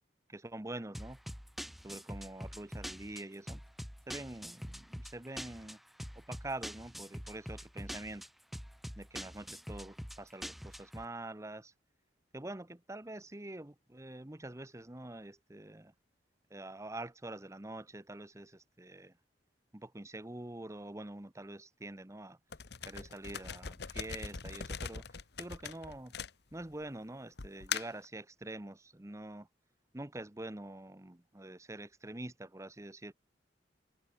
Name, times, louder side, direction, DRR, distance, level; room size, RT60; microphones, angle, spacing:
voice 1, 0.3-1.2 1.8-3.6 4.1-5.8 6.1-8.2 9.0-11.7 12.3-15.9 16.5-19.1 19.7-22.4 22.8-26.1 26.5-29.5 29.9-33.1, right 1 dB, 15° right, 0.9 m, -45 dB
sound 1, 0.9-11.0, equal, ahead, 1.7 m, -45 dB
sound 2, 22.5-26.8 27.4-28.1, left 6 dB, 60° left, 1.1 m, -41 dB
head